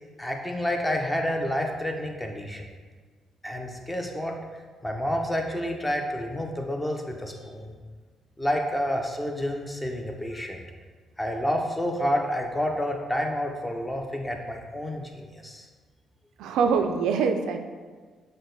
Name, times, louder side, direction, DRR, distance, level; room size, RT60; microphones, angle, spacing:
voice 1, 0.2-2.7 3.4-4.4 4.8-7.7 8.4-10.6 11.2-15.7, equal, 15° left, 2 dB, 0.6 m, -29 dB
voice 2, 16.4-17.6, right 5 dB, 90° right, 6 dB, 0.3 m, -24 dB
6.1 x 2.2 x 3.9 m, 1.5 s
cardioid pair, 90°, 0 cm